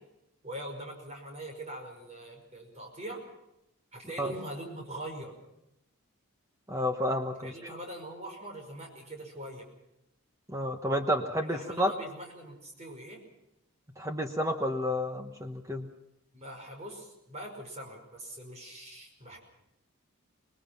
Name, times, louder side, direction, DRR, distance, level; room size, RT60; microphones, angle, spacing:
voice 1, 0.4-3.2 3.9-5.4 7.4-9.7 11.4-13.2 16.3-19.4, right 1 dB, 30° right, 2 dB, 5.3 m, -42 dB
voice 2, 6.7-7.7 10.5-11.9 14.0-15.9, equal, 15° right, 5 dB, 1.1 m, -30 dB
25.5 x 20.0 x 5.9 m, 0.85 s
head